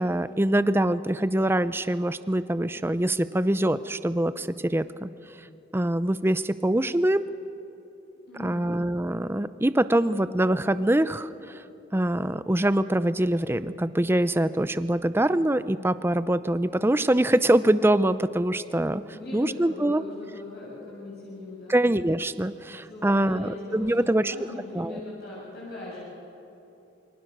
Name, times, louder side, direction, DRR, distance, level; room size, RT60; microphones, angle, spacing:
voice 1, 0.0-5.1 5.7-7.3 8.4-11.6 11.9-19.0 19.3-20.0 21.7-24.3 24.7-25.0, right 1 dB, 15° right, 14 dB, 0.5 m, -24 dB
voice 2, 8.3-8.7 19.1-21.8 22.9-26.1, left 2 dB, 60° left, -7 dB, 7.6 m, -39 dB
28.5 x 23.5 x 6.7 m, 3.0 s
head